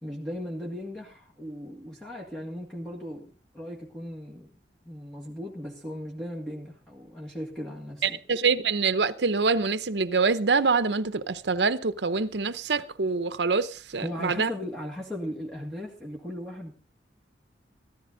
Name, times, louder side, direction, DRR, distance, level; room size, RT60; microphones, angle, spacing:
voice 1, 0.0-4.5 4.9-8.2 14.0-16.7, equal, 5° left, 1.9 m, -37 dB
voice 2, 8.0-14.5, right 4 dB, 70° right, 0.8 m, -25 dB
14.5 x 14.0 x 3.9 m
head